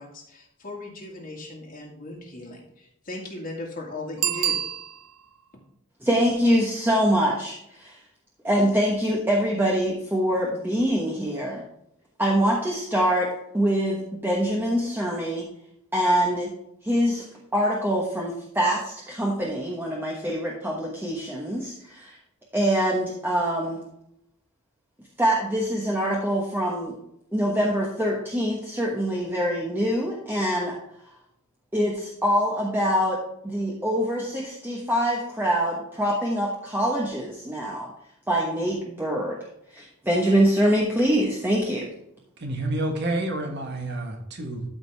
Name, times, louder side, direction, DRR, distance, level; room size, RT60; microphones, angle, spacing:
voice 1, 0.0-4.6, left 2 dB, 45° left, -2 dB, 1.9 m, -38 dB
Bicycle bell, 4.2-5.4 10.8-10.9, right 11 dB, 80° right, 0.5 m, -27 dB
voice 2, 6.0-8.0 8.4-11.6 12.2-15.5 15.9-16.5 16.8-17.3 17.5-22.2 22.5-23.8 25.2-26.9 27.3-30.8 31.7-33.2 33.4-37.9 38.3-39.4 39.7-41.9, equal, 10° right, -2 dB, 1.2 m, -24 dB
voice 3, 42.4-44.6, right 1 dB, 55° right, 4 dB, 1.3 m, -29 dB
13.0 x 5.2 x 3.4 m, 0.80 s
head